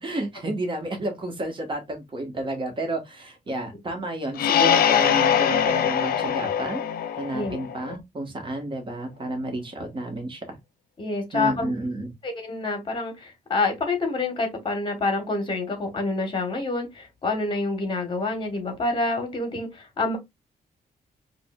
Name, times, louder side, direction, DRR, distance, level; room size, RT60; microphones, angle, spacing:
voice 1, 0.0-6.8 7.2-10.6 11.3-12.1, right 1 dB, 35° right, 1.3 m, -31 dB
sound 1, 4.4-8.0, left 8 dB, 85° left, 0.5 m, -22 dB
voice 2, 11.0-11.7 12.2-20.2, left 3 dB, 35° left, 1.3 m, -27 dB
4.8 x 2.5 x 2.3 m
wide cardioid pair, 150°, 15 cm